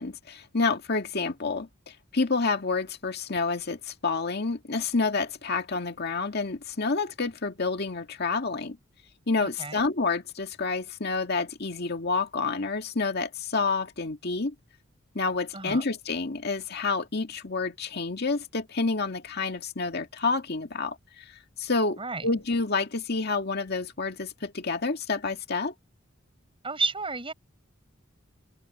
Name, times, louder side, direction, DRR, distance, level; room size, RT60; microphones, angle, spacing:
voice 1, 0.0-8.8 9.3-14.5 15.2-21.3 21.6-25.7, left 4 dB, 55° left, 1.9 m, -29 dB
voice 2, 9.4-9.8 15.5-15.9 22.0-22.3 26.6-27.3, right 4 dB, 25° right, 7.8 m, -31 dB
open air
head